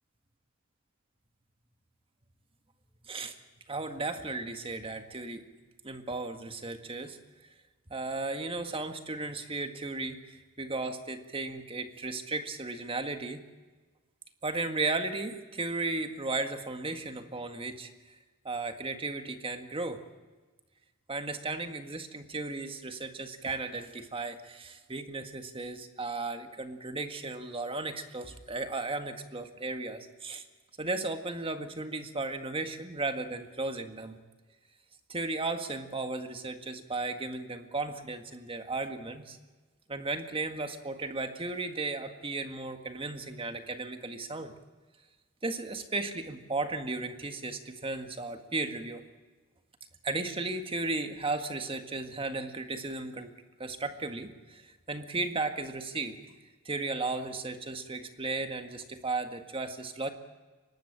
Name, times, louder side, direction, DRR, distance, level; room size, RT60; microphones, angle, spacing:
voice 1, 3.0-3.4 3.7-5.4 5.8-7.2 7.9-13.4 14.4-17.9 18.4-20.1 21.1-30.4 30.8-34.2 35.1-39.4 39.9-44.5 45.4-49.0 50.0-53.3 53.6-56.2 56.7-60.1, right 3 dB, 25° right, 7 dB, 1.8 m, -35 dB
24.0 x 19.5 x 8.8 m, 1.3 s
head